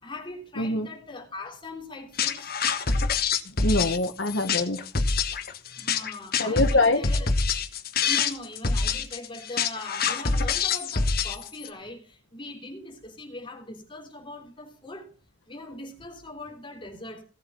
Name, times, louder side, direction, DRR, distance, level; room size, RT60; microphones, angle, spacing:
voice 1, 0.0-2.5 5.7-7.3 8.0-15.1 15.5-17.2, left 2 dB, 25° left, 3.5 m, -41 dB
voice 2, 0.6-0.9 3.6-4.8 6.4-7.0, left 2 dB, 85° left, 1.7 m, -24 dB
sound 1, 2.2-11.7, left 5 dB, 55° left, 1.5 m, -26 dB
17.5 x 7.8 x 5.5 m
head